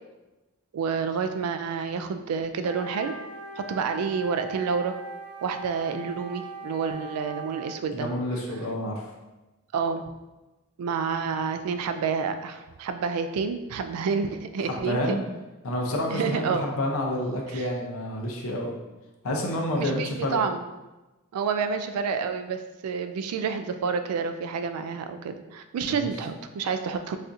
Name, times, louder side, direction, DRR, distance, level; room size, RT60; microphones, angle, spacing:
voice 1, 0.7-3.2 3.6-5.0 5.4-8.1 9.7-10.0 10.8-15.2 16.1-16.7 17.5-17.7 19.7-20.6 21.3-27.2, right 5 dB, 90° right, 10 dB, 0.3 m, -29 dB
Wind instrument woodwind instrument, 2.6-7.8, right 3 dB, 5° right, 0.4 m, -40 dB
voice 2, 7.9-9.0 14.7-15.2 15.6-18.7 19.2-20.4 25.8-26.1, left 1 dB, 75° left, 0 dB, 0.6 m, -29 dB
4.1 x 2.4 x 2.5 m, 1.1 s
head